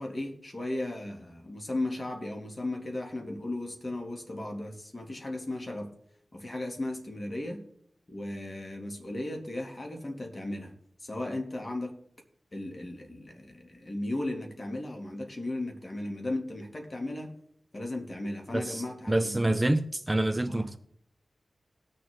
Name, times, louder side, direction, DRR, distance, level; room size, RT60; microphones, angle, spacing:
voice 1, 0.0-5.9 6.3-7.6 8.1-10.7 11.0-11.9 12.5-17.3 17.7-19.4 20.5-20.7, left 1 dB, 40° left, 2.6 m, -36 dB
voice 2, 18.5-20.8, right 1 dB, 20° right, 0.7 m, -27 dB
19.5 x 6.7 x 3.7 m
cardioid pair, 45°, 0 cm